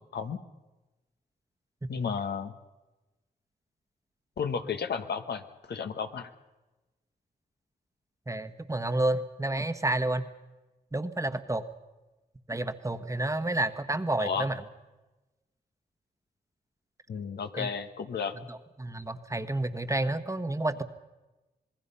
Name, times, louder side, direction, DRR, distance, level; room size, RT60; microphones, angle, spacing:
voice 1, 1.9-2.5 4.4-5.4 5.7-6.3 14.2-14.5 17.1-18.3, left 6 dB, 80° left, 8 dB, 1.3 m, -32 dB
voice 2, 8.3-10.3 10.9-11.7 12.5-14.6 17.6-17.7 18.4-20.8, right 2 dB, 20° right, 10 dB, 1.3 m, -30 dB
27.0 x 20.5 x 5.6 m, 1.1 s
cardioid pair, 70°, 17 cm